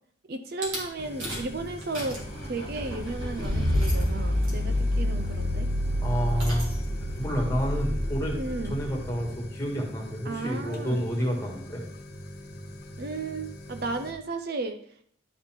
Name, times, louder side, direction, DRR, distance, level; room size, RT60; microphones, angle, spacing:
voice 1, 0.3-5.7 8.3-8.7 10.3-11.0 13.0-14.8, right 3 dB, 50° right, 8 dB, 0.5 m, -34 dB
Rattle / Car / Engine starting, 0.6-0.8 1.2-1.5 1.8-9.5, equal, 90° right, 2.9 m, -29 dB
sound 1, 1.0-14.1, left 1 dB, 50° left, 1.3 m, -43 dB
voice 2, 6.0-6.7 7.2-8.4 8.6-11.8, equal, 15° left, -1 dB, 1.7 m, -29 dB
11.5 x 4.2 x 4.4 m, 0.63 s
head